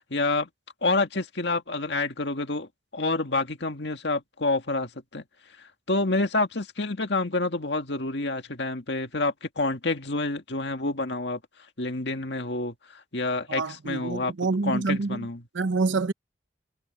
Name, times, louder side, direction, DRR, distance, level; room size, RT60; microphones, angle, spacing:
voice 1, 0.1-0.5 0.8-5.2 5.9-11.4 11.8-14.3 14.6-15.4, left 2 dB, 65° left, 2.1 m, -28 dB
voice 2, 13.5-15.3 15.5-16.1, right 3 dB, 85° right, 0.8 m, -27 dB
head